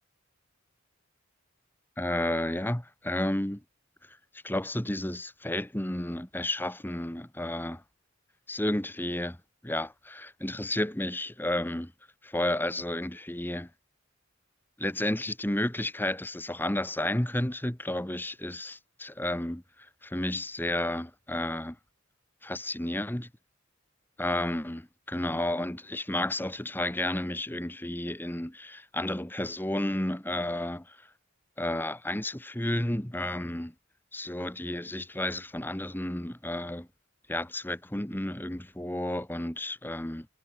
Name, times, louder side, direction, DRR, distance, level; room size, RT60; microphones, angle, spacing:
voice 1, 2.0-3.6 4.4-7.8 8.5-9.4 9.6-11.9 12.2-13.7 14.8-19.6 20.0-21.8 22.4-23.3 24.2-30.8 31.6-33.7 34.1-36.9 37.3-40.3, left 1 dB, 10° left, 1.2 m, -32 dB
head